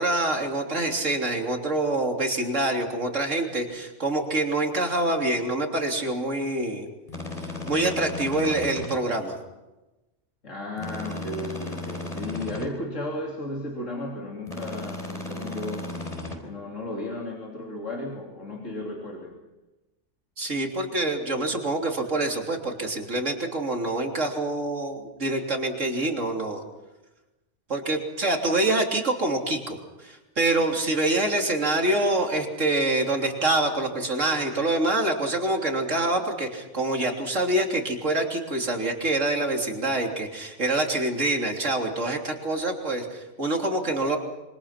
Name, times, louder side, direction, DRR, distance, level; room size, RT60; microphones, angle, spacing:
voice 1, 0.0-6.9 7.7-9.4 20.4-26.6 27.7-44.2, right 2 dB, 85° right, 2 dB, 3.7 m, -26 dB
sound 1, 7.1-9.0 10.8-12.7 14.5-16.4, left 2 dB, 30° left, 4.4 m, -35 dB
voice 2, 10.4-15.9 16.4-19.4, left 1 dB, 85° left, -1 dB, 3.6 m, -34 dB
26.5 x 25.5 x 5.9 m, 1.1 s
omnidirectional pair, 1.3 m